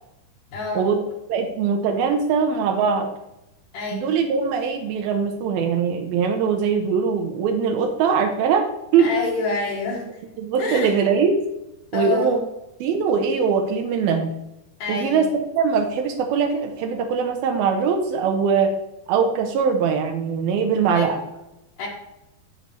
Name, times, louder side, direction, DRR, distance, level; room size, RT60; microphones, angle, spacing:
voice 1, 0.5-0.9 3.7-4.1 9.0-10.1 10.6-10.9 11.9-12.3 14.8-15.2 20.9-21.1 21.8-21.9, left 3 dB, 65° left, -3 dB, 3.1 m, -27 dB
voice 2, 1.3-3.1 3.9-9.1 10.4-11.4 11.9-12.4 12.8-14.3 14.9-15.3 15.5-18.7 19.1-21.2, right 6 dB, 85° right, 3 dB, 2.6 m, -21 dB
14.0 x 5.4 x 3.1 m, 0.93 s
omnidirectional pair, 4.3 m